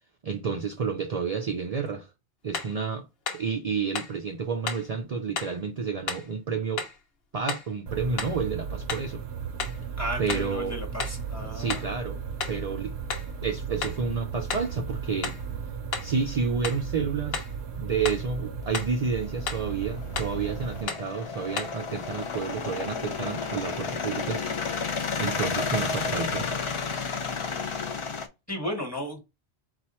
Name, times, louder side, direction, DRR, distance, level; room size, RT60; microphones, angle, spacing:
voice 1, 0.2-2.1 2.4-3.0 3.3-6.8 7.3-9.2 10.2-10.8 11.5-12.2 12.5-12.9 13.4-15.4 16.0-17.4 17.8-24.4 25.2-26.5, right 5 dB, 50° right, 0.5 m, -30 dB
sound 1, 2.5-2.8 3.3-3.5 4.0-4.2 4.7-4.9 5.4-5.6 6.1-6.3 6.8-7.0 7.5-7.7 8.2-8.4 8.9-9.1 9.6-9.8 10.3-10.5 11.0-11.3 11.7-11.9 12.4-12.7 13.1-13.3 13.8-14.0 14.5-14.7 15.2-15.5 15.9-16.2 16.6-16.9 17.3-17.6 18.0-18.3 18.7-19.0 19.4-19.7 20.2-20.4 20.9-21.1 21.6-21.8, left 5 dB, 65° left, 1.0 m, -33 dB
sound 2, 7.9-20.8, right 6 dB, 85° right, 1.0 m, -36 dB
voice 2, 10.0-12.0 28.5-29.2, equal, 15° left, 1.3 m, -34 dB
sound 3, 19.2-28.3, left 4 dB, 45° left, 0.4 m, -32 dB
4.3 x 2.4 x 4.2 m
omnidirectional pair, 1.1 m